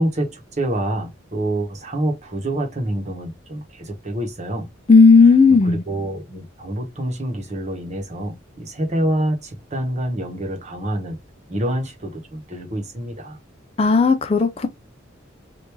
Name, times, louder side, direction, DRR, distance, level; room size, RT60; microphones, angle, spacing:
voice 1, 0.0-4.7 5.5-11.2 11.5-13.4, right 1 dB, 35° right, 1.0 m, -26 dB
voice 2, 4.9-5.8 13.8-14.7, left 4 dB, 30° left, 0.4 m, -13 dB
3.4 x 2.6 x 3.0 m
head